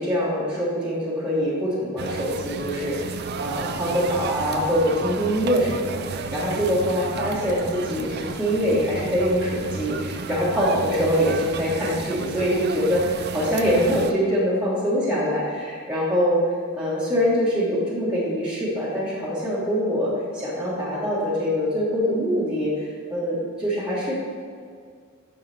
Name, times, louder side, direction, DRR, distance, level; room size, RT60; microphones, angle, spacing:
voice 1, 0.0-16.4 16.7-24.1, equal, 5° right, -9 dB, 1.6 m, -24 dB
sound 1, 2.0-14.1, right 5 dB, 55° right, 0.4 m, -32 dB
9.2 x 6.5 x 3.4 m, 2.1 s
head